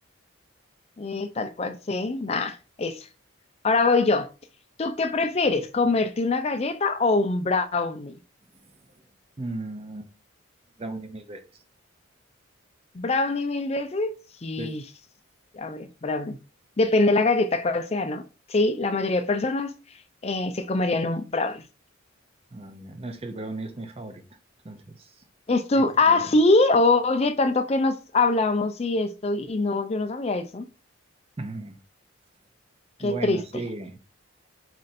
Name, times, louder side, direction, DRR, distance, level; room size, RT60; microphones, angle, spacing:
voice 1, 1.0-3.1 3.6-4.3 4.8-8.1 12.9-14.1 14.4-14.8 15.5-16.4 16.8-18.2 18.5-19.7 20.2-21.6 25.5-30.6 33.0-33.4, left 3 dB, 30° left, 0.4 m, -23 dB
voice 2, 9.4-10.1 10.8-11.4 14.6-14.8 22.5-24.2 24.6-25.1 25.7-26.4 31.4-31.8 33.0-34.0, right 2 dB, 30° right, 0.6 m, -36 dB
4.3 x 2.6 x 4.1 m
head